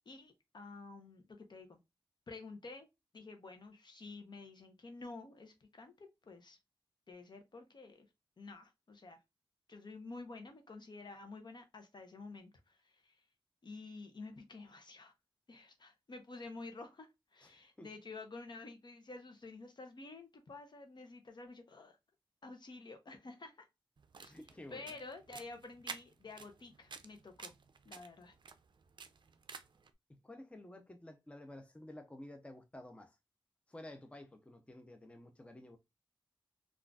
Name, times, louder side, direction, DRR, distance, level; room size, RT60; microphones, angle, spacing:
voice 1, 0.1-1.8 2.3-2.9 3.1-6.6 7.1-8.1 8.4-9.2 9.7-13.2 13.6-15.1 15.5-22.0 22.4-23.7 24.2-24.3 24.7-27.5 27.8-28.3, left 3 dB, 55° left, 0.7 m, -50 dB
voice 2, 17.4-17.9 24.3-25.0 30.2-33.2 33.7-35.8, left 1 dB, 15° left, 0.6 m, -52 dB
sound 1, 24.0-29.9, right 5 dB, 55° right, 0.4 m, -52 dB
3.7 x 2.4 x 2.3 m
cardioid pair, 65°, 9 cm